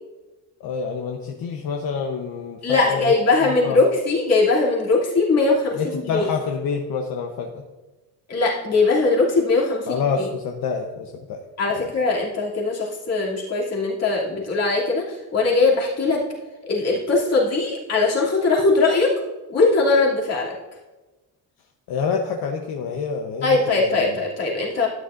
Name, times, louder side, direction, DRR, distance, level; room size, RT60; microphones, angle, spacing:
voice 1, 0.6-3.1 3.6-3.8 5.7-7.6 9.9-11.4 11.7-11.8 21.9-24.1, left 5 dB, 70° left, 3 dB, 1.0 m, -27 dB
voice 2, 2.6-6.3 8.3-10.3 11.6-16.2 16.6-19.1 19.5-20.5 23.4-24.9, left 3 dB, 40° left, -4 dB, 2.7 m, -20 dB
12.0 x 9.8 x 2.5 m, 1.2 s
cardioid pair, 155°, 37 cm